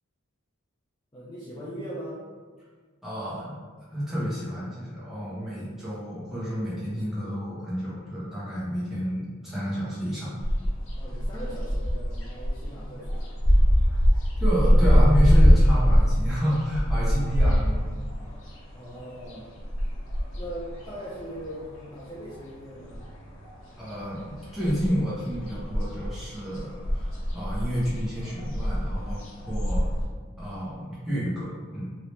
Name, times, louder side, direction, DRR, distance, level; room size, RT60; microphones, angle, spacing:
voice 1, 1.1-2.2 11.0-13.4 18.7-19.5 20.4-23.0, equal, 20° left, -9 dB, 0.5 m, -40 dB
voice 2, 3.0-3.5 3.9-10.4 14.4-17.9 23.8-29.9 30.4-31.9, equal, ahead, -10 dB, 1.0 m, -30 dB
sound 1, 10.4-22.0 22.3-23.6 23.9-30.0, equal, 65° left, 0.8 m, -23 dB
2.9 x 2.9 x 3.2 m, 1.5 s
head